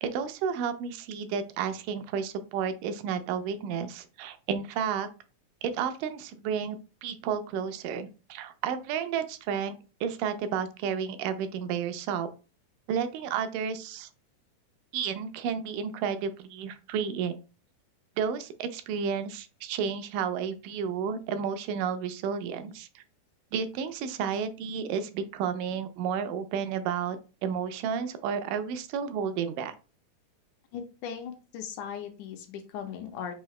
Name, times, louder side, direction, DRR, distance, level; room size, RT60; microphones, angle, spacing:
voice 1, 0.0-5.1 5.6-12.3 12.9-14.1 14.9-17.4 18.2-23.0 23.5-27.2 27.4-29.8, right 7 dB, 85° right, 9 dB, 2.2 m, -32 dB
voice 2, 30.7-33.3, left 8 dB, 80° left, 6 dB, 2.0 m, -38 dB
5.6 x 2.7 x 3.1 m, 0.33 s
omnidirectional pair, 3.7 m